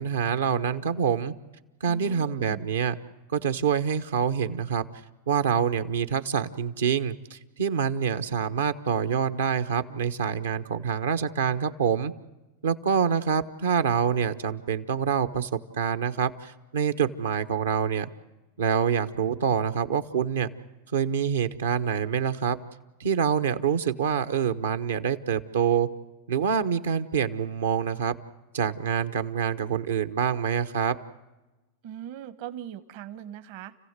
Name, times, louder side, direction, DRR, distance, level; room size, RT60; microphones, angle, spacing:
voice 1, 0.0-1.3 1.8-3.0 3.3-4.9 5.3-12.1 12.6-18.1 18.6-20.5 20.9-22.6 23.0-25.9 26.3-28.1 28.5-31.0, right 7 dB, 80° right, 9 dB, 1.1 m, -26 dB
voice 2, 1.9-2.6 31.8-33.8, right 11 dB, 60° right, 13 dB, 1.2 m, -40 dB
30.0 x 15.5 x 8.1 m, 1.1 s
hypercardioid pair, 100°, 0 cm